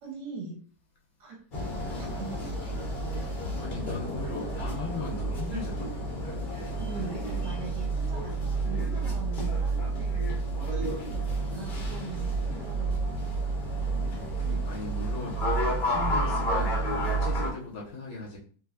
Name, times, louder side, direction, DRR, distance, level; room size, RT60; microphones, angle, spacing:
voice 1, 0.0-0.6 1.2-1.4 2.0-2.8 6.8-10.2 10.7-13.0, right 4 dB, 65° right, 0 dB, 1.2 m, -41 dB
sound 1, 1.5-17.5, right 2 dB, 60° left, 0.5 m, -30 dB
voice 2, 3.6-5.9 14.0-18.4, left 3 dB, 25° left, -5 dB, 1.1 m, -38 dB
3.3 x 3.0 x 2.5 m, 0.43 s
omnidirectional pair, 2.3 m